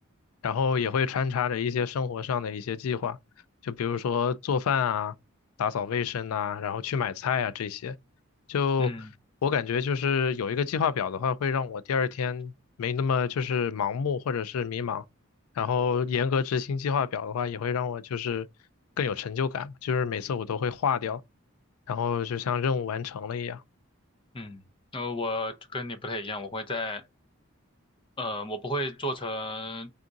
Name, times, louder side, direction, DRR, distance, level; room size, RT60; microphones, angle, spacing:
voice 1, 0.4-3.2 3.6-5.1 5.6-7.9 8.5-8.9 9.4-12.5 12.8-15.0 15.6-18.5 19.0-21.2 21.9-23.6, left 6 dB, 85° left, 0.4 m, -28 dB
voice 2, 8.8-9.1 24.3-24.6 24.9-27.0 28.2-29.9, left 1 dB, 25° left, 0.5 m, -33 dB
3.5 x 2.5 x 3.8 m
head